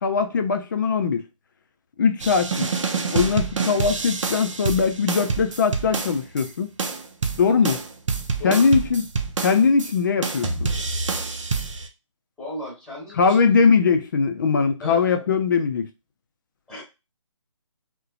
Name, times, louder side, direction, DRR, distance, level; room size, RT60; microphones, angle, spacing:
voice 1, 0.0-1.2 2.0-2.7 3.1-6.7 7.4-7.8 8.4-9.0 9.4-10.8 13.2-15.9, left 5 dB, 40° left, 0.4 m, -21 dB
sound 1, 2.2-6.5 6.8-9.9 10.2-11.9, right 4 dB, 75° right, 0.6 m, -27 dB
voice 2, 12.4-13.5 14.8-15.2 16.7-16.8, left 1 dB, 5° left, 1.2 m, -36 dB
2.6 x 2.1 x 2.4 m
figure-of-eight pair, 150°, 16 cm